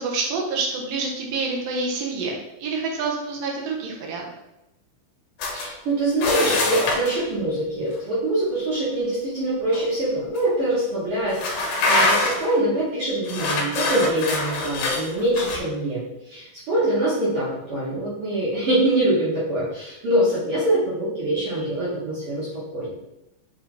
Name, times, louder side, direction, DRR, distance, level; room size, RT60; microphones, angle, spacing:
voice 1, 0.0-4.2, right 4 dB, 65° right, 0 dB, 1.7 m, -27 dB
sound 1, 5.4-5.7 6.2-7.2 9.7-9.9 10.4-10.5 11.3-12.5 13.2-15.6, left 2 dB, 80° left, 2.7 m, -24 dB
voice 2, 5.5-22.9, right 1 dB, 50° right, -8 dB, 2.0 m, -24 dB
7.8 x 3.1 x 4.0 m, 0.90 s
omnidirectional pair, 4.2 m